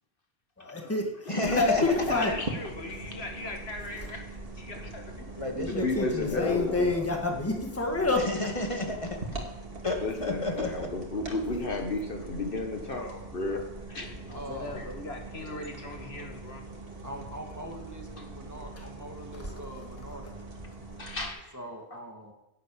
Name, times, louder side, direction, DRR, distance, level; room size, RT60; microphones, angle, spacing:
voice 1, 0.6-2.3 5.5-8.2 18.8-18.9 19.3-19.8, left 3 dB, 15° left, 2 dB, 1.6 m, -28 dB
voice 2, 1.3-2.1 5.4-7.0 8.2-9.4 9.8-10.9, left 2 dB, 30° left, 2 dB, 2.1 m, -32 dB
sound 1, 1.4-21.3, right 2 dB, 65° right, 2.3 m, -42 dB
voice 3, 2.1-4.3 4.6-5.1 14.2-16.6, left 2 dB, 75° left, 3 dB, 2.0 m, -39 dB
voice 4, 5.8-6.9 10.0-13.6 13.9-14.1 14.7-14.8 21.0-21.4, left 2 dB, 60° left, 3 dB, 1.4 m, -32 dB
voice 5, 14.3-14.9 17.0-20.5 21.5-22.3, right 1 dB, 15° right, 0 dB, 2.0 m, -43 dB
11.0 x 8.4 x 8.5 m, 0.93 s
omnidirectional pair, 1.1 m